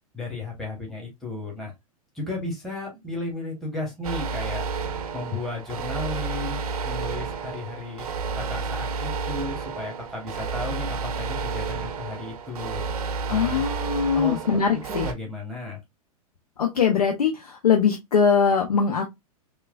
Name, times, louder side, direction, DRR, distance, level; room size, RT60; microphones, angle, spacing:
voice 1, 0.1-1.7 2.1-4.7 5.1-8.1 8.3-12.8 13.3-13.6 14.1-14.4 14.7-15.8, left 2 dB, ahead, 1.1 m, -34 dB
sound 1, 4.0-15.1, right 5 dB, 75° right, 0.6 m, -31 dB
voice 2, 13.3-15.1 16.6-19.0, left 6 dB, 90° left, 0.5 m, -22 dB
3.1 x 2.2 x 2.3 m
hypercardioid pair, 110°, 19 cm